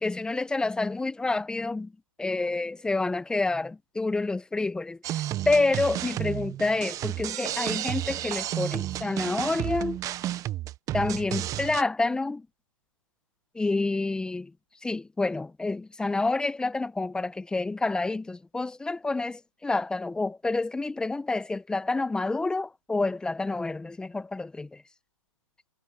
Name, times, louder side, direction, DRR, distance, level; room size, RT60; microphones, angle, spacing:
voice 1, 0.0-1.9 2.2-10.0 10.9-12.5 13.5-14.5 14.8-24.7, left 3 dB, 5° left, 1.2 m, -28 dB
sound 1, 5.0-11.8, right 13 dB, 20° right, 1.5 m, -32 dB
hypercardioid pair, 135°, 18 cm